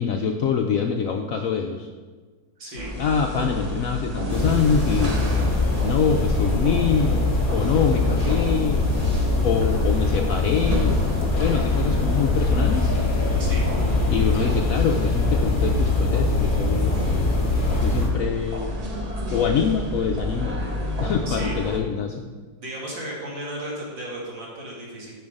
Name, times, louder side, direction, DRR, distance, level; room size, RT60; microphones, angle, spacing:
voice 1, 0.0-1.9 3.0-5.2 5.8-8.9 9.4-12.9 14.1-16.9 17.7-18.8 19.3-20.6 21.0-22.3, left 6 dB, 75° left, 3 dB, 0.8 m, -25 dB
voice 2, 2.6-2.9 13.4-13.7 21.3-21.6 22.6-25.1, right 1 dB, 85° right, -4 dB, 2.8 m, -34 dB
sound 1, 2.8-21.8, equal, 35° right, 0.6 m, -31 dB
sound 2, 4.3-18.1, left 2 dB, 30° left, 1.3 m, -23 dB
7.1 x 6.2 x 5.2 m, 1.4 s
omnidirectional pair, 1.9 m